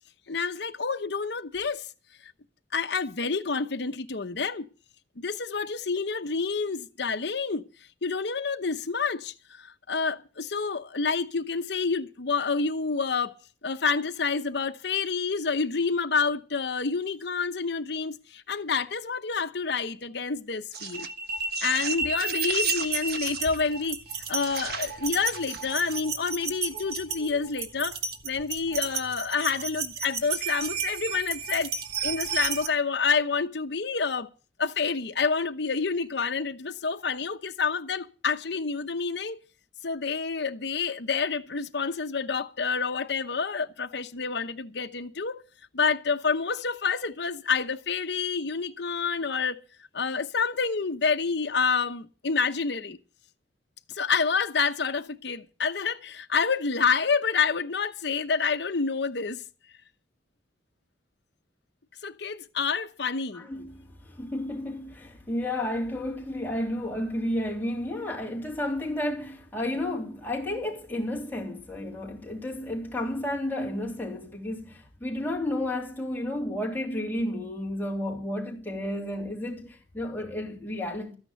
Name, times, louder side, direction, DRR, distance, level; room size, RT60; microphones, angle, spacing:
voice 1, 0.3-1.9 2.2-2.3 2.7-4.7 5.2-7.6 8.0-13.3 13.6-21.1 21.6-24.0 24.3-28.0 28.2-31.7 32.0-34.3 34.6-39.4 39.8-45.4 45.7-49.6 49.9-53.0 53.9-59.4 62.0-63.5, left 5 dB, 65° left, 0.9 m, -28 dB
sound 1, 20.7-32.7, right 5 dB, 60° right, 1.4 m, -32 dB
voice 2, 63.3-81.1, left 1 dB, 10° left, 3.3 m, -32 dB
14.0 x 9.7 x 6.9 m
head